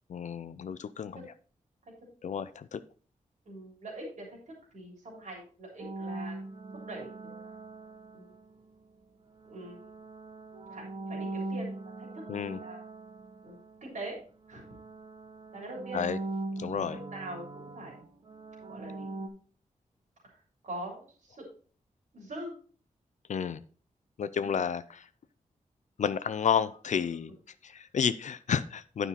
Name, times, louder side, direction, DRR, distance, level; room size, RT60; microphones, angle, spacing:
voice 1, 0.1-1.3 2.2-2.8 12.3-12.6 15.9-16.2 16.6-17.0 23.3-23.6 24.2-25.1 26.0-27.3 27.6-29.1, left 7 dB, 60° left, 14 dB, 0.5 m, -31 dB
voice 2, 3.5-6.4 6.7-8.3 9.4-10.0 10.7-12.8 13.4-14.2 14.5-14.8 15.5-16.0 16.9-17.4 17.7-18.0 18.7-19.1 20.2-21.5 22.1-22.6 24.4-24.7, right 1 dB, 65° right, -1 dB, 3.5 m, -43 dB
sound 1, 5.8-8.7 9.4-14.2 14.4-19.3, right 2 dB, 40° right, 0.9 m, -41 dB
9.7 x 5.5 x 4.1 m, 0.41 s
wide cardioid pair, 160°, 14 cm